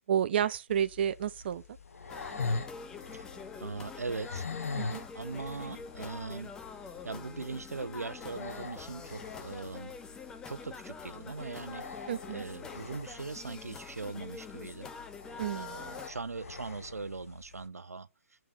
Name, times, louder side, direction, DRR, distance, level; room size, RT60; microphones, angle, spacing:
voice 1, 0.1-1.6 4.7-5.0 12.1-12.4 15.4-15.9, right 9 dB, 45° right, 0.5 m, -31 dB
sound 1, 0.7-17.7, left 4 dB, 70° left, 1.1 m, -43 dB
sound 2, 2.1-16.1, left 5 dB, 10° left, 0.5 m, -46 dB
voice 2, 3.6-4.5 5.1-6.5 6.8-9.9 10.5-14.9 15.5-18.1, right 4 dB, 90° right, 0.6 m, -40 dB
8.6 x 4.6 x 3.5 m
figure-of-eight pair, 140°, 8 cm